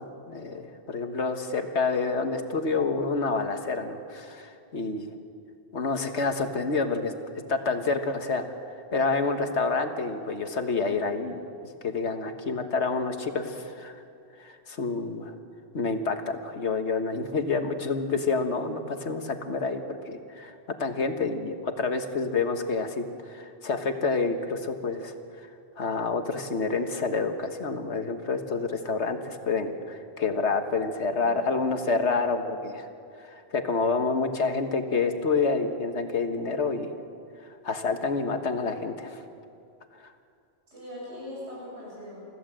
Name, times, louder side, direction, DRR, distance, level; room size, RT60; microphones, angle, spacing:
voice 1, 0.0-5.2 5.7-7.1 7.5-8.4 8.9-11.4 11.8-14.0 14.4-15.3 15.7-20.5 20.8-25.1 25.8-32.9 33.3-36.9 37.6-39.2, left 4 dB, 85° left, 6 dB, 1.7 m, -28 dB
voice 2, 31.1-31.6 40.7-42.3, left 1 dB, 90° right, -5 dB, 7.2 m, -41 dB
29.0 x 15.0 x 7.7 m, 2.5 s
omnidirectional pair, 1.1 m